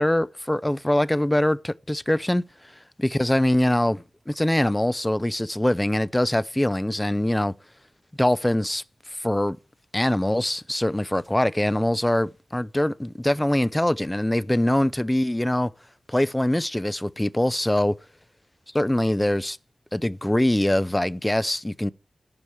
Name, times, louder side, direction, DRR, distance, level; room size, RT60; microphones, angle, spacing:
voice 1, 0.0-2.4 3.1-7.5 8.2-8.8 9.2-9.6 9.9-15.7 16.1-17.9 18.7-19.6 19.9-21.9, left 1 dB, 10° left, 0.4 m, -23 dB
9.8 x 4.6 x 7.0 m
wide cardioid pair, 120°, 0 cm